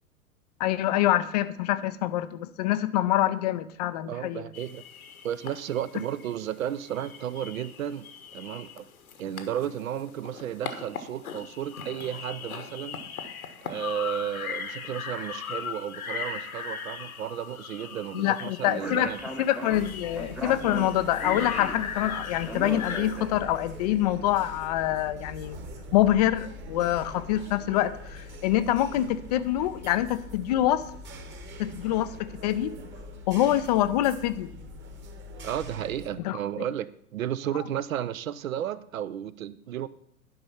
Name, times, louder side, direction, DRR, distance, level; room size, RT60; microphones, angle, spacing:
voice 1, 0.6-4.5 18.1-19.1 19.4-25.7 25.9-30.8 31.6-32.7 33.3-34.5 36.2-36.4, left 13 dB, 30° left, 13 dB, 0.4 m, -25 dB
voice 2, 4.1-4.8 5.2-8.1 8.3-8.9 9.2-13.0 13.6-19.2 28.5-28.7 35.4-39.9, right 10 dB, 65° right, 16 dB, 0.7 m, -33 dB
sound 1, 4.5-23.0, left 7 dB, 75° left, 1.2 m, -39 dB
Speech, 18.6-23.7, right 1 dB, ahead, 0.7 m, -38 dB
sound 2, 19.7-36.1, left 1 dB, 25° right, 1.2 m, -43 dB
11.0 x 5.2 x 5.7 m, 0.72 s
figure-of-eight pair, 100°, 44 cm